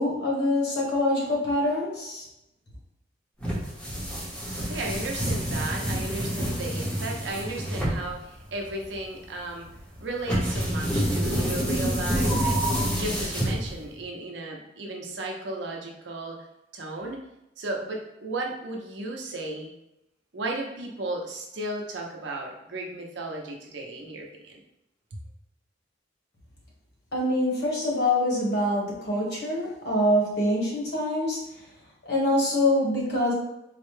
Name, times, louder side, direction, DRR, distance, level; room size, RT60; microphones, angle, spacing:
voice 1, 0.0-2.2 27.1-31.4 32.0-33.3, left 1 dB, 60° left, -3 dB, 1.1 m, -25 dB
sound 1, 3.4-14.0, equal, 5° left, 0.7 m, -28 dB
voice 2, 4.6-9.7 10.0-12.7 12.9-16.4 16.7-17.2 17.6-19.7 20.3-24.6 25.1-25.2, right 2 dB, 70° right, 1 dB, 0.7 m, -35 dB
4.0 x 2.1 x 3.2 m, 0.89 s
head